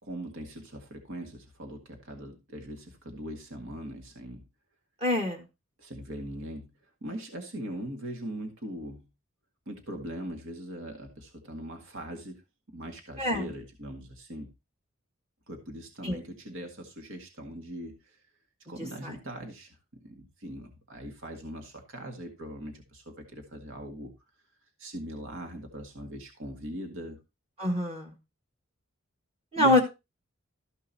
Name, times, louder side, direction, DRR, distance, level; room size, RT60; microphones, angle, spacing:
voice 1, 0.0-4.4 5.8-9.1 9.7-12.4 12.7-14.5 15.5-18.2 18.7-24.1 24.8-27.2 29.6-29.8, right 1 dB, 65° right, 4 dB, 2.0 m, -41 dB
voice 2, 5.0-5.4 13.2-13.5 16.0-16.2 19.0-19.1 27.6-28.1 29.5-29.8, left 1 dB, 30° right, 1 dB, 1.8 m, -25 dB
13.5 x 5.4 x 4.1 m, 0.26 s
head